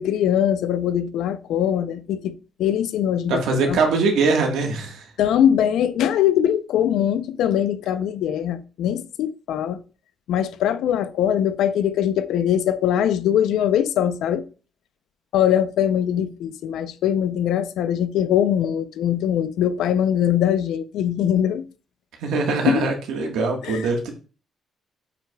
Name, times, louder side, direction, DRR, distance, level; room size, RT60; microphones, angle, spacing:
voice 1, 0.0-2.3 2.6-3.8 5.2-9.8 10.3-14.4 15.3-21.6 22.7-22.8 23.6-23.9, left 10 dB, 85° left, 0.5 m, -22 dB
voice 2, 3.3-5.1 22.2-24.1, right 3 dB, 85° right, 1.4 m, -22 dB
8.7 x 4.9 x 2.3 m
cardioid pair, 90°, 0 cm